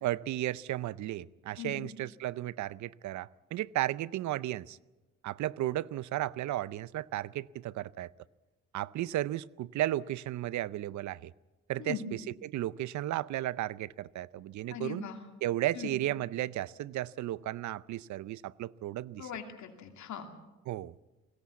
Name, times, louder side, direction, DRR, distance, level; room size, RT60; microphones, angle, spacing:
voice 1, 0.0-4.8 5.2-8.1 8.7-11.3 11.7-15.0 15.4-19.3 20.7-20.9, right 14 dB, 70° right, 20 dB, 0.6 m, -34 dB
voice 2, 1.6-1.9 11.8-12.1 14.7-15.3 15.7-16.0 19.2-20.3, left 7 dB, 70° left, 4 dB, 2.7 m, -40 dB
21.5 x 17.0 x 8.3 m, 1.2 s
cardioid pair, 90°, 30 cm